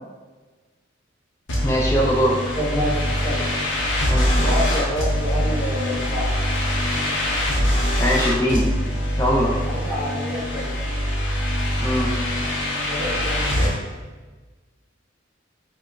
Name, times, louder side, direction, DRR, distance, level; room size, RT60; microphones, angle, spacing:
sound 1, 1.5-13.7, equal, 65° left, 0.7 m, -23 dB
voice 1, 1.6-2.4 4.1-4.6 8.0-8.7 9.2-9.6 11.8-12.1, equal, 15° left, -2 dB, 0.4 m, -21 dB
voice 2, 2.5-3.8 4.4-6.3 9.5-10.8 12.8-13.7, equal, 5° right, -11 dB, 1.1 m, -28 dB
4.5 x 2.0 x 2.3 m, 1.3 s
head